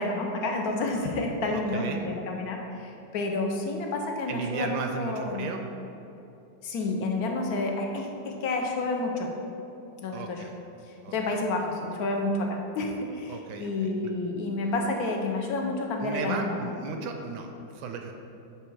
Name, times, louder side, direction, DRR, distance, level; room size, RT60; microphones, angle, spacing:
voice 1, 0.0-5.5 6.6-9.3 10.0-10.4 11.1-12.5 12.7-16.6, left 2 dB, 65° left, 2 dB, 1.1 m, -30 dB
voice 2, 1.5-2.0 4.3-5.6 10.1-10.5 11.0-11.4 13.3-13.9 16.0-18.1, right 4 dB, 75° right, 4 dB, 1.2 m, -35 dB
7.5 x 3.3 x 4.7 m, 2.8 s
omnidirectional pair, 1.9 m